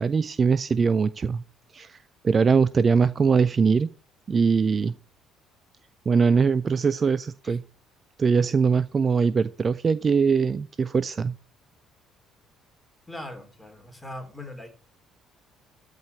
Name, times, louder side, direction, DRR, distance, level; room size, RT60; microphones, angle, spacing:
voice 1, 0.0-1.4 1.7-2.0 2.2-3.9 4.3-4.9 6.1-7.6 8.2-11.3, right 5 dB, 35° right, 18 dB, 0.5 m, -22 dB
voice 2, 13.1-14.7, left 1 dB, 5° left, 5 dB, 3.8 m, -40 dB
13.5 x 5.1 x 8.3 m, 0.38 s
figure-of-eight pair, 50°, 0 cm